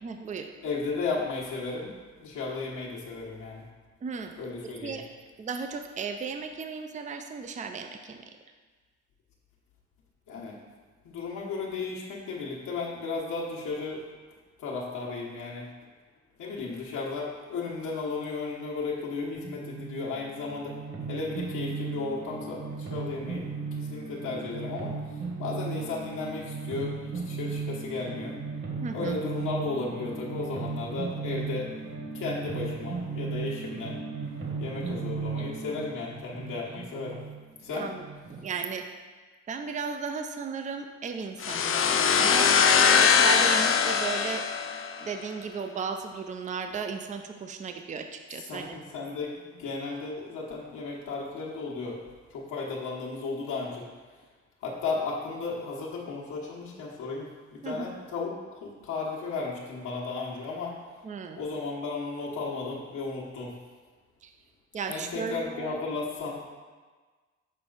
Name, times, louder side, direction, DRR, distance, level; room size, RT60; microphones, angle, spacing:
voice 1, 0.0-0.5 4.0-4.3 4.6-5.1 5.4-8.3 28.8-29.1 37.8-38.0 38.4-38.8 39.5-42.5 42.9-44.4 45.0-48.8 57.6-57.9 61.0-61.4 64.2-64.3 64.7-65.8, right 5 dB, 25° right, 6 dB, 0.5 m, -35 dB
voice 2, 0.6-1.9 2.2-3.6 4.4-5.0 10.3-10.6 11.0-14.0 14.6-15.7 16.4-20.8 21.1-28.3 28.9-31.7 32.1-34.0 34.6-37.2 37.6-37.9 48.3-52.0 52.3-53.8 54.6-58.3 58.6-60.8 61.4-63.5 64.9-66.5, left 4 dB, 80° left, -4 dB, 1.3 m, -34 dB
sound 1, 19.3-38.5, right 4 dB, 40° right, 1.4 m, -36 dB
sound 2, 41.4-45.1, left 6 dB, 45° left, 0.5 m, -22 dB
6.4 x 4.2 x 4.0 m, 1.4 s
cardioid pair, 90°, 30 cm